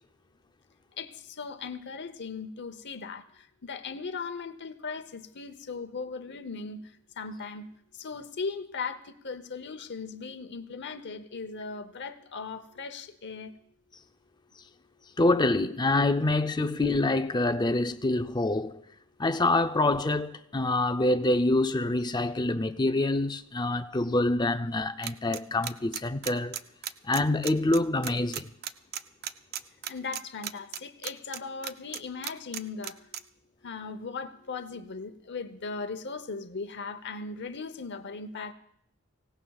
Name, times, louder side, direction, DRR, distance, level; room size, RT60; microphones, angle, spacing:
voice 1, 1.0-3.2 3.6-6.8 7.2-7.7 8.0-13.5 29.9-33.0 33.6-38.5, left 4 dB, 55° left, 0.9 m, -38 dB
voice 2, 15.2-18.8 19.2-26.6 27.0-28.5, left 2 dB, 20° left, 0.6 m, -26 dB
sound 1, 25.0-33.2, right 10 dB, 50° right, 0.5 m, -35 dB
24.5 x 17.5 x 2.4 m
head